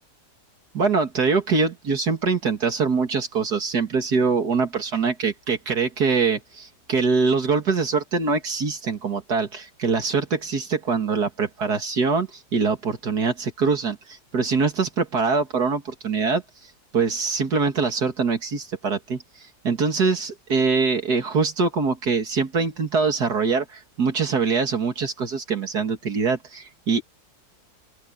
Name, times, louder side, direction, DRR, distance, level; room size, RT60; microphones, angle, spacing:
voice 1, 0.7-16.4 16.9-19.2 19.6-27.0, right 4 dB, 70° right, 2.8 m, -23 dB
open air
omnidirectional pair, 1.8 m